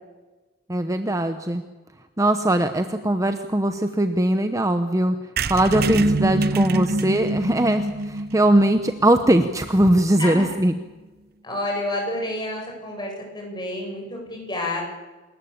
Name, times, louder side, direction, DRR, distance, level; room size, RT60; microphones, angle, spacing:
voice 1, 0.7-1.6 2.2-5.2 5.5-10.7, right 1 dB, 15° right, 8 dB, 0.9 m, -20 dB
sound 1, 5.4-9.0 9.5-9.6 9.8-9.9 10.1-10.2 10.4-10.6, right 7 dB, 55° right, 0.8 m, -33 dB
sound 2, 5.7-10.3, right 1 dB, 80° right, 1.7 m, -26 dB
voice 2, 11.4-14.8, left 1 dB, 25° left, 0 dB, 7.5 m, -29 dB
28.0 x 14.0 x 8.7 m, 1.2 s
head